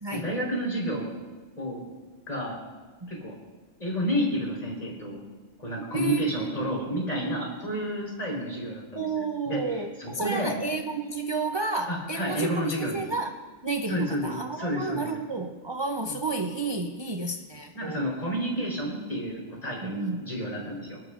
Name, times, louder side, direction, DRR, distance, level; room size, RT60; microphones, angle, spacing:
voice 1, 0.1-1.1 1.6-1.8 2.3-2.6 3.1-3.3 3.8-5.2 5.6-10.6 11.9-13.0 13.9-15.1 17.7-21.1, equal, 30° left, -3 dB, 4.2 m, -30 dB
voice 2, 5.9-7.1 8.9-18.1 19.8-20.2, right 3 dB, 30° right, 4 dB, 0.5 m, -32 dB
27.0 x 12.0 x 2.5 m, 1.3 s
omnidirectional pair, 1.4 m